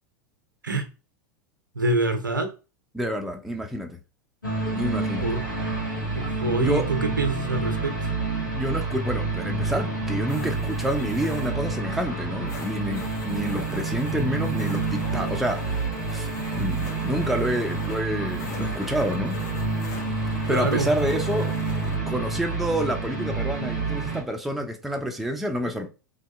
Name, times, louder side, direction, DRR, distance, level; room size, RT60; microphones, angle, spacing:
voice 1, 1.7-2.5 5.2-5.4 6.1-8.1 20.4-20.9, right 2 dB, 85° right, 0.5 m, -26 dB
voice 2, 2.9-4.0 4.8-5.4 6.6-6.9 8.6-15.8 16.1-16.3 16.6-19.4 20.5-21.5 21.8-25.9, equal, ahead, 0.4 m, -28 dB
sound 1, 4.4-24.2, right 3 dB, 85° left, 0.8 m, -28 dB
sound 2, 9.7-22.0, left 4 dB, 55° left, 0.7 m, -42 dB
2.6 x 2.2 x 2.3 m
figure-of-eight pair, 85°, 10 cm